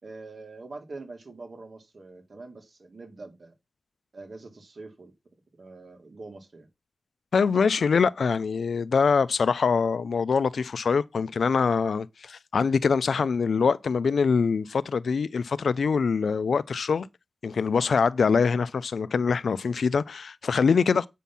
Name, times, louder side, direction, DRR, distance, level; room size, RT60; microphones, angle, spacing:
voice 1, 0.0-3.5 4.1-5.1 5.5-6.7 20.8-20.9, right 3 dB, 50° right, 2.2 m, -44 dB
voice 2, 7.3-17.1 17.4-21.1, left 5 dB, 80° left, 0.5 m, -24 dB
8.4 x 5.8 x 5.5 m
wide cardioid pair, 110°, 0 cm